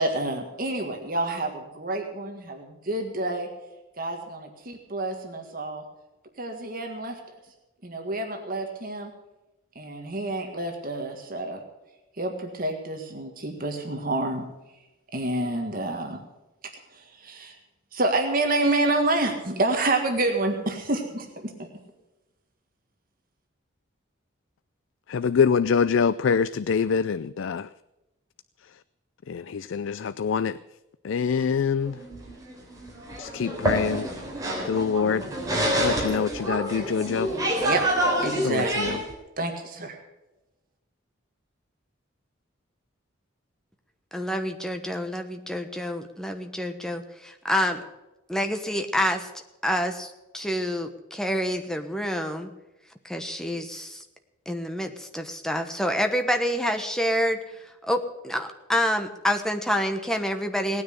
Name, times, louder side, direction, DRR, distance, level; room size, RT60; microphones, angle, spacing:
voice 1, 0.0-3.5 4.0-5.8 6.4-7.2 7.8-9.1 9.8-11.6 12.2-14.4 15.1-16.2 17.0-17.6 17.9-21.7 37.6-37.8 38.2-39.0 39.4-40.0, right 2 dB, 40° right, 1.8 m, -28 dB
voice 2, 25.1-27.7 29.3-30.6 31.0-32.0 33.2-34.1 34.6-35.3 35.8-37.3 38.4-39.0, left 6 dB, 65° left, 0.4 m, -25 dB
sound 1, 31.8-39.1, equal, 15° right, 3.8 m, -27 dB
voice 3, 44.1-47.8 48.3-49.3 49.6-52.5 53.0-54.0 54.5-57.4 57.8-60.8, equal, 5° left, 1.1 m, -27 dB
18.0 x 9.6 x 6.6 m
head